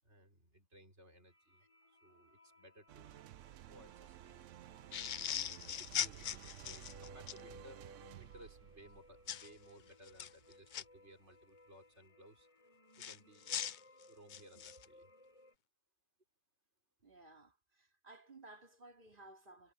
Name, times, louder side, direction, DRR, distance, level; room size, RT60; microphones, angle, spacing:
voice 1, 0.0-3.1 3.4-4.4 4.9-12.5 13.0-13.6 14.1-15.1, right 1 dB, 55° right, 5.5 m, -61 dB
sound 1, 1.3-15.5, left 1 dB, 25° left, 7.6 m, -63 dB
sound 2, 2.9-11.4, right 12 dB, 70° right, 0.9 m, -55 dB
sound 3, 4.9-7.4 9.3-9.5 10.1-10.8 13.0-14.9, left 9 dB, 60° left, 0.5 m, -40 dB
voice 2, 17.0-19.7, right 2 dB, 40° right, 3.3 m, -58 dB
omnidirectional pair, 1.4 m